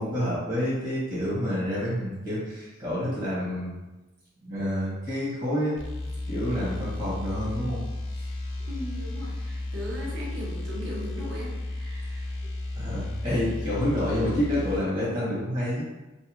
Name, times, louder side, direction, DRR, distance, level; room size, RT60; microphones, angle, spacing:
voice 1, 0.0-3.7 4.4-5.8 6.2-7.9 8.2-8.3 12.7-15.8, equal, 45° right, -8 dB, 1.2 m, -28 dB
sound 1, 5.8-14.9, left 2 dB, 90° left, 0.5 m, -33 dB
voice 2, 8.7-12.2, equal, 75° right, -4 dB, 0.8 m, -38 dB
2.7 x 2.2 x 3.0 m, 1.1 s
head